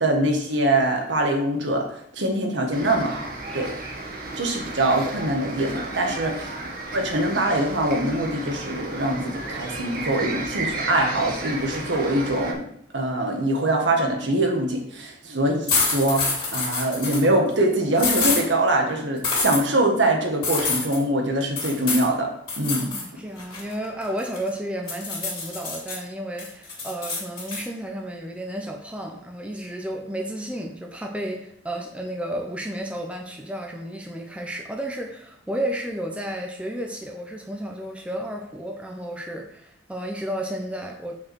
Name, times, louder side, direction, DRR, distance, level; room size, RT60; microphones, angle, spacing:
voice 1, 0.0-1.9 2.1-3.3 3.5-3.7 4.4-6.5 6.9-12.6 12.9-22.3 22.6-22.8, right 1 dB, 65° right, 2 dB, 1.6 m, -23 dB
sound 1, 2.7-12.5, right 2 dB, 50° right, 1.6 m, -33 dB
sound 2, 15.7-17.3 18.0-18.4 19.2-19.6 20.4-21.0 21.6-22.1 22.5-23.0 23.4-24.5 24.9-26.0 26.4-27.6, left 3 dB, 25° left, 2.9 m, -26 dB
voice 2, 22.8-41.2, right 1 dB, 5° right, 1 dB, 0.7 m, -32 dB
6.1 x 4.7 x 6.3 m, 0.69 s
head